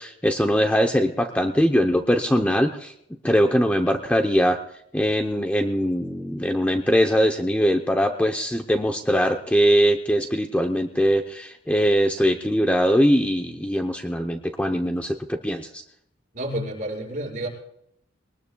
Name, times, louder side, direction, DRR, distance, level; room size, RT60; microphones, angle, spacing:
voice 1, 0.0-2.9 3.2-4.6 4.9-15.8, equal, 5° left, 3 dB, 0.7 m, -21 dB
voice 2, 16.3-17.5, right 1 dB, 40° right, -1 dB, 5.7 m, -30 dB
22.5 x 19.5 x 2.3 m, 0.74 s
head